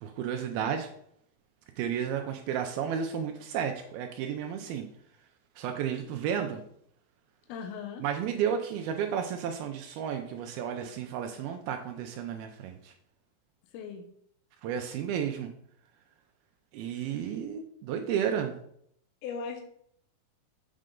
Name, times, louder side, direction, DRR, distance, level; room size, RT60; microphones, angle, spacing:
voice 1, 0.0-0.9 1.8-4.9 5.6-6.6 8.0-12.9 14.6-15.5 16.7-18.6, right 8 dB, 85° right, 5 dB, 2.2 m, -32 dB
voice 2, 7.5-8.0 13.7-14.0 17.2-17.4 19.2-19.6, left 6 dB, 75° left, 4 dB, 2.5 m, -38 dB
7.6 x 6.4 x 3.7 m, 0.67 s
omnidirectional pair, 5.0 m